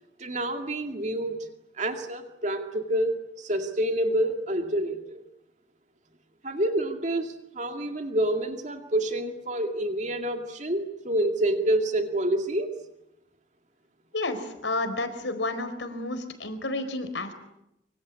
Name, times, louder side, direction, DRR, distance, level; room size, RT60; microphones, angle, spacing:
voice 1, 0.2-1.5 1.8-5.2 6.4-12.7, right 1 dB, 40° right, 5 dB, 2.1 m, -28 dB
voice 2, 14.1-17.3, left 2 dB, 85° left, 10 dB, 4.4 m, -31 dB
25.0 x 24.5 x 8.4 m, 0.85 s
head